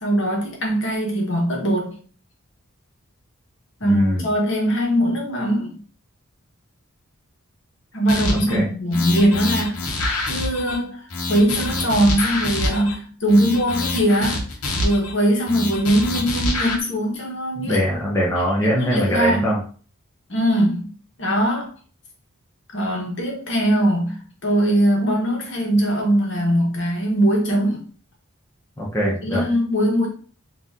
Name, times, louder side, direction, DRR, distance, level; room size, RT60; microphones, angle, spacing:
voice 1, 0.0-2.0 3.8-5.8 7.9-9.8 10.3-14.5 14.8-17.8 18.6-19.5 20.3-20.9 21.2-21.7 22.7-27.8 29.2-30.1, equal, 55° left, -1 dB, 1.3 m, -21 dB
voice 2, 3.8-4.3 8.5-8.7 17.6-19.6 28.8-29.4, equal, 10° left, -5 dB, 0.7 m, -22 dB
sound 1, 8.1-8.6 8.9-10.8 11.1-12.9 13.3-15.1 15.5-16.8, left 2 dB, 80° left, 1.0 m, -26 dB
4.0 x 2.7 x 3.7 m, 0.42 s
head